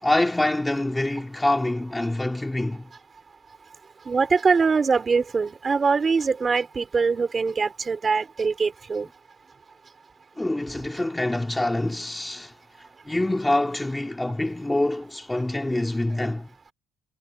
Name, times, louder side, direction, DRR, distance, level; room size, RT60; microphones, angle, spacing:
voice 1, 0.0-2.9 10.4-12.5 13.1-16.5, left 1 dB, 5° left, 3.8 m, -25 dB
voice 2, 4.0-9.1, right 5 dB, 25° right, 4.8 m, -23 dB
cardioid pair, 135°, 0 cm